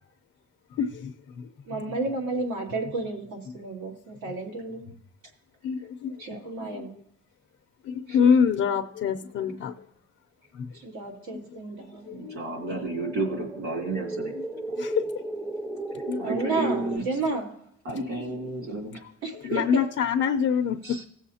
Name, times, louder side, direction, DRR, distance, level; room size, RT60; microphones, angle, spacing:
voice 1, 0.7-2.0 3.5-3.6 4.3-4.4 5.6-6.9 7.8-9.9 10.5-10.7 11.3-11.6 12.1-12.7 14.3-14.5 14.8-15.1 16.1-16.4 18.0-18.1 19.3-21.0, left 7 dB, 50° left, 4 dB, 0.7 m, -27 dB
voice 2, 1.7-4.8 6.3-6.9 10.8-12.1 12.7-12.8 16.2-17.5 19.2-19.8, right 3 dB, 75° right, -1 dB, 2.6 m, -31 dB
sound 1, 11.8-17.0, right 2 dB, 5° right, 0.3 m, -35 dB
voice 3, 12.1-14.3 16.2-17.0 17.8-19.0 20.8-21.0, right 2 dB, 50° right, 0 dB, 2.9 m, -32 dB
18.0 x 7.2 x 2.8 m, 0.73 s
cardioid pair, 160°, 29 cm